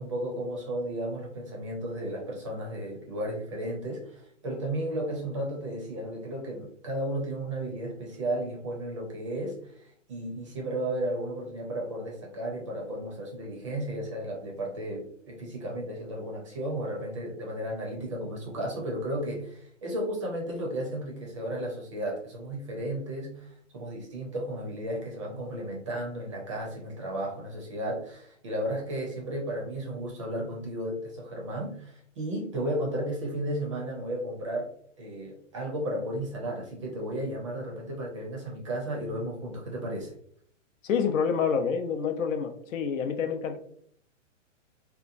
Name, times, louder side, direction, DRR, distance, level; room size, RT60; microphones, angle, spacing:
voice 1, 0.0-34.7 35.0-40.1, right 1 dB, 25° right, -1 dB, 0.4 m, -34 dB
voice 2, 40.8-43.6, left 6 dB, 85° left, 7 dB, 0.6 m, -27 dB
2.9 x 2.2 x 2.5 m, 0.63 s
hypercardioid pair, 155°, 38 cm